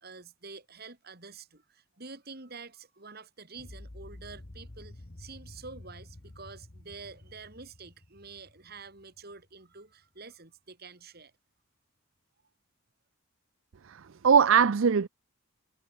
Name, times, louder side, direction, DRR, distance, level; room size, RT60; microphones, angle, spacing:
voice 1, 0.0-11.3, right 4 dB, 45° right, 2.5 m, -48 dB
sound 1, 3.5-9.6, left 1 dB, 35° left, 1.2 m, -50 dB
voice 2, 13.9-15.1, right 6 dB, 65° right, 0.5 m, -22 dB
head